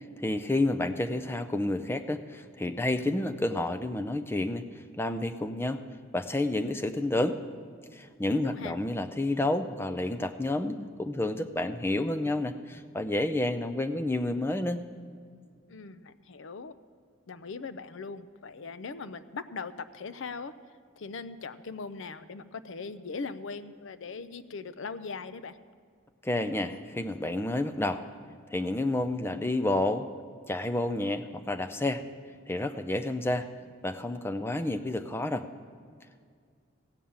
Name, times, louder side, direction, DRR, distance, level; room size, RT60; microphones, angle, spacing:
voice 1, 0.2-5.8 6.1-7.4 7.9-14.8 26.2-28.0 28.5-30.1 30.5-32.0 32.5-33.5 33.8-35.5, left 1 dB, 10° left, 9 dB, 0.4 m, -30 dB
voice 2, 8.2-8.7 15.7-16.7 17.3-20.5 21.0-25.6, left 4 dB, 60° left, 13 dB, 0.5 m, -40 dB
15.5 x 5.5 x 8.7 m, 2.1 s
head